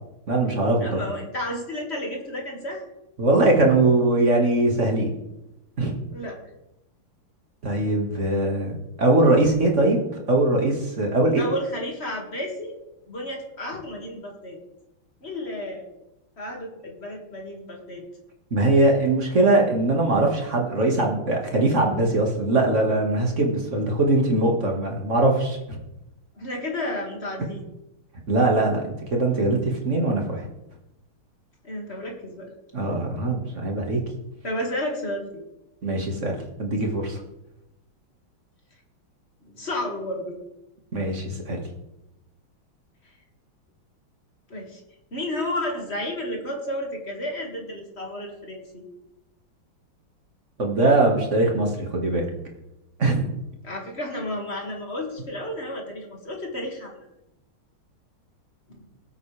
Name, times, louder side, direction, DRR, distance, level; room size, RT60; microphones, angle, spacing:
voice 1, 0.3-1.0 3.2-5.1 5.8-6.0 7.6-10.0 10.3-11.4 18.5-25.6 28.3-30.4 32.7-34.0 35.8-37.2 40.9-41.6 50.6-52.3 53.0-53.3, right 2 dB, 35° right, 1 dB, 2.1 m, -21 dB
voice 2, 0.8-2.8 6.1-6.4 11.4-12.8 13.1-14.6 15.2-15.9 16.4-18.1 26.4-27.6 31.6-32.5 34.4-35.4 39.5-40.4 44.5-44.8 45.1-48.8 53.6-57.0 58.7-58.8, left 1 dB, 30° left, 0 dB, 2.3 m, -32 dB
19.0 x 8.6 x 3.4 m, 0.91 s
omnidirectional pair, 2.3 m